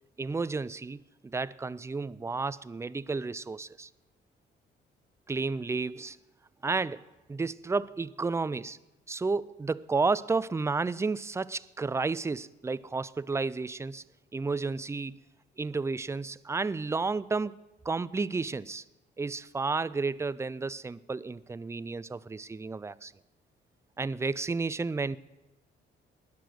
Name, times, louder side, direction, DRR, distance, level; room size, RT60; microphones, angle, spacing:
voice 1, 0.2-3.9 5.3-6.2 6.6-7.0 7.3-8.8 9.1-14.0 14.3-15.2 15.6-17.6 17.9-18.8 19.2-23.1 24.0-25.2, right 4 dB, 15° right, 0.4 m, -32 dB
20.0 x 6.8 x 6.2 m
cardioid pair, 90°, 20 cm